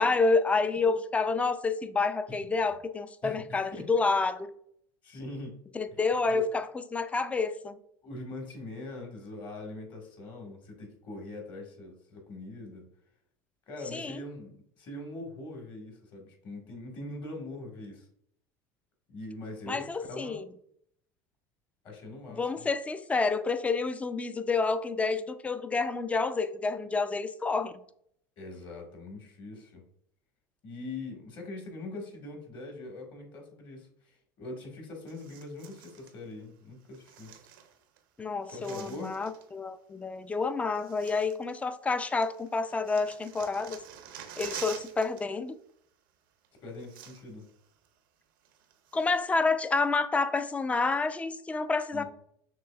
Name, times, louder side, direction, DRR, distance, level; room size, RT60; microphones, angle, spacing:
voice 1, 0.0-4.5 5.7-7.8 13.9-14.2 19.7-20.4 22.4-27.7 38.2-43.8 44.4-45.6 48.9-52.0, left 4 dB, 10° left, 0.3 m, -29 dB
voice 2, 3.2-3.9 5.0-5.6 5.9-6.0 6.3-6.4 8.0-12.8 13.7-18.1 19.1-20.4 21.8-22.7 28.4-29.8 30.6-37.3 38.5-39.2 46.6-47.5 51.9-52.0, left 2 dB, 45° left, 1.6 m, -42 dB
sound 1, 35.1-36.1 36.9-38.0 38.2-39.5 40.3-40.4 40.8-41.9 42.2-45.2 45.5-45.7 46.4-46.5 46.7-47.5 47.9-48.0 48.5-49.4 49.9-50.0, right 9 dB, 85° right, 0.6 m, -47 dB
5.9 x 3.2 x 2.3 m
supercardioid pair, 100°, 11 cm